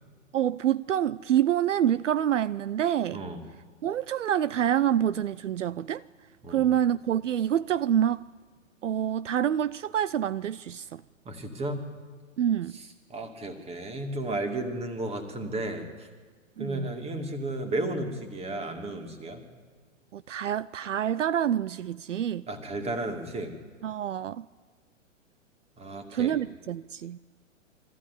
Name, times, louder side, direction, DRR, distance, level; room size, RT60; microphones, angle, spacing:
voice 1, 0.3-3.2 3.8-6.0 6.5-8.3 8.8-11.0 12.4-12.7 16.6-16.9 20.1-22.5 23.8-24.5 26.1-27.2, right 10 dB, 65° right, 0.6 m, -27 dB
voice 2, 11.2-11.8 12.7-12.8 13.1-16.1 16.6-19.4 22.5-23.5 25.8-26.4, right 2 dB, 15° right, 2.5 m, -33 dB
23.0 x 15.0 x 10.0 m
figure-of-eight pair, 115°, 39 cm